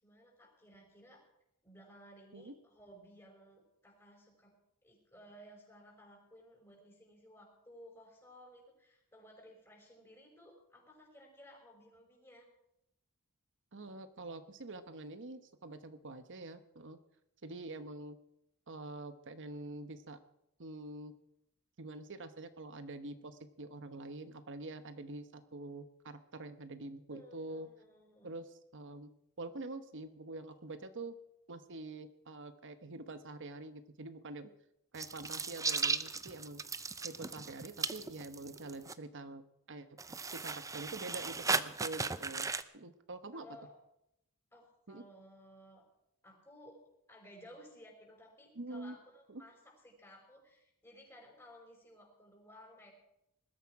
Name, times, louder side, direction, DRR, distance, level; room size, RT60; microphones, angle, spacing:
voice 1, 0.0-1.2 1.6-4.6 4.8-12.5 27.1-28.3 43.3-43.7 44.5-45.8 46.2-46.8 47.1-52.9, equal, 15° left, -3 dB, 4.8 m, -57 dB
voice 2, 13.7-17.0 17.4-18.2 18.7-20.2 20.6-21.1 21.8-27.7 28.2-29.1 29.4-31.2 31.5-34.5 34.9-36.6 37.0-39.4 39.7-39.9 40.3-42.5 42.7-43.4 44.9-45.0 48.6-49.0 49.3-49.4, right 2 dB, 55° right, 10 dB, 1.1 m, -46 dB
sound 1, 34.9-38.9 40.0-42.6, right 4 dB, 15° right, 0.6 m, -36 dB
20.5 x 13.0 x 4.8 m, 0.80 s
head